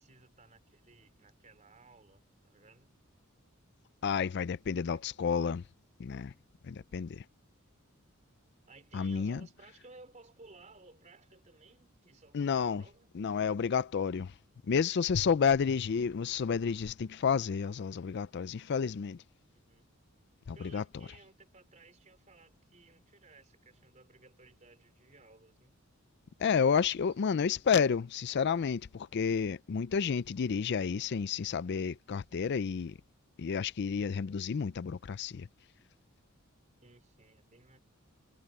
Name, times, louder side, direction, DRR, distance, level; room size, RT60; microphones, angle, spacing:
voice 1, 0.0-2.9 4.9-5.0 8.6-13.2 19.5-19.9 20.5-25.7 26.7-26.8 36.8-37.8, right 3 dB, 35° right, 3.6 m, -58 dB
voice 2, 4.0-5.6 6.0-6.3 6.6-7.2 8.9-9.4 12.3-12.8 13.1-14.3 14.6-19.2 20.5-20.8 26.4-33.0 33.4-35.5, left 6 dB, 55° left, 0.4 m, -30 dB
head